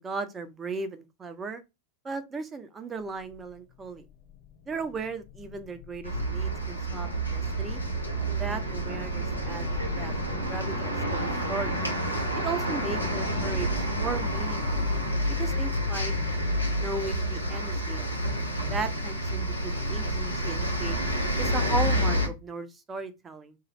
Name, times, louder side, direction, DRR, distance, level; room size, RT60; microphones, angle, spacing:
voice 1, 0.0-1.6 2.0-4.0 4.7-7.8 8.4-9.7 10.0-11.8 12.4-14.8 15.4-16.1 16.7-18.1 18.7-21.0 21.4-23.6, right 3 dB, 20° right, 0.5 m, -36 dB
sound 1, 3.0-10.6, left 10 dB, 50° left, 0.6 m, -46 dB
sound 2, 6.0-22.3, equal, 85° left, 0.8 m, -29 dB
2.5 x 2.3 x 3.0 m
figure-of-eight pair, 90°, 0 cm